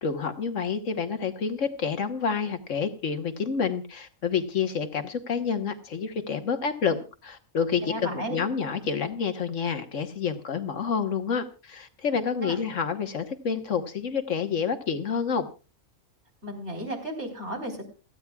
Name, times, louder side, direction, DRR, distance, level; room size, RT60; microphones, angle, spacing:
voice 1, 0.0-15.5, left 6 dB, 65° left, 8 dB, 1.5 m, -28 dB
voice 2, 7.9-8.4 12.4-12.6 16.4-17.9, right 1 dB, 55° right, 2 dB, 4.3 m, -34 dB
28.0 x 9.7 x 2.3 m, 0.32 s
omnidirectional pair, 1.4 m